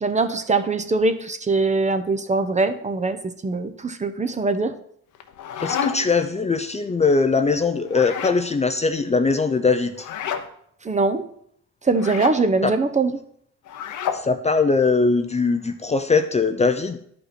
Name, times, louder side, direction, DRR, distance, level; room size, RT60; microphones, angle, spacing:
voice 1, 0.0-3.2 3.4-4.7 10.8-11.2 11.8-13.2, right 3 dB, 25° right, 8 dB, 0.8 m, -22 dB
sound 1, 5.1-6.2 7.9-8.4 10.0-10.5 11.9-12.4 13.7-14.3, left 8 dB, 75° left, 0.9 m, -29 dB
voice 2, 5.6-10.1 12.6-12.7 14.1-17.0, left 4 dB, 20° left, 8 dB, 0.6 m, -21 dB
11.5 x 5.4 x 4.3 m, 0.68 s
cardioid pair, 90°, 30 cm